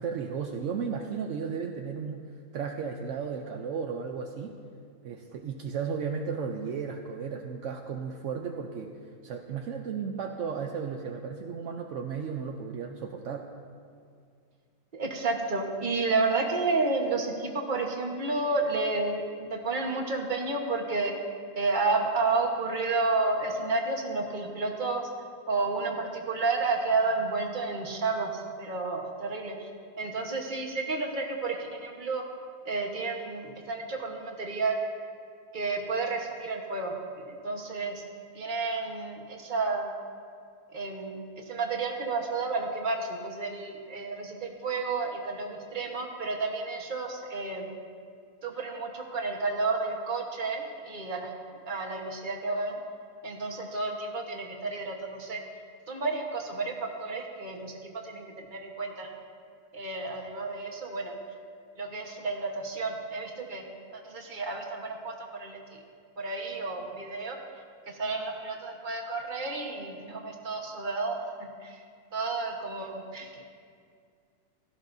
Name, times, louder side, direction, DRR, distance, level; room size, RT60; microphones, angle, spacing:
voice 1, 0.0-2.2 2.5-4.6 5.0-8.9 9.2-13.5, right 6 dB, 70° right, 3 dB, 0.7 m, -34 dB
voice 2, 14.9-21.1 21.5-25.0 25.5-29.7 30.0-32.2 32.6-34.8 35.5-38.0 38.3-39.9 40.7-47.7 48.4-51.3 51.6-52.8 53.2-55.4 55.9-59.1 59.7-61.1 61.8-63.7 63.9-65.6 66.2-67.4 67.9-71.8 72.1-73.4, right 3 dB, 30° right, 0 dB, 1.2 m, -31 dB
16.5 x 13.5 x 2.7 m, 2.2 s
omnidirectional pair, 1.9 m